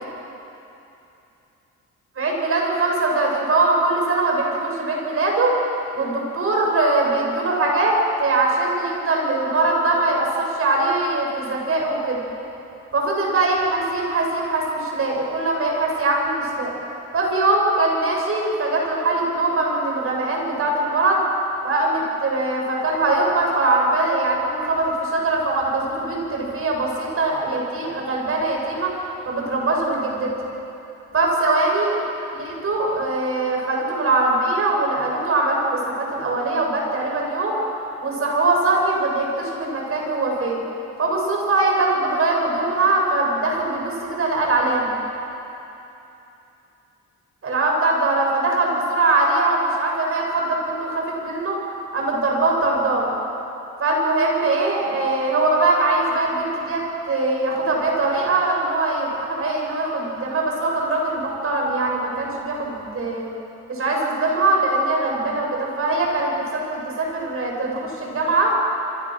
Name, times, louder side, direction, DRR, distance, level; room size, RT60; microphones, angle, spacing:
voice 1, 2.2-5.6 5.9-12.2 12.9-16.7 17.1-21.2 21.6-29.0 29.3-30.3 31.1-32.0 32.3-37.6 38.0-40.6 41.0-44.9 47.4-51.6 51.9-53.1 53.8-63.3 63.7-68.6, right 2 dB, 45° right, -1 dB, 7.2 m, -22 dB
27.5 x 24.0 x 6.4 m, 2.9 s
cardioid pair, 90°, 30 cm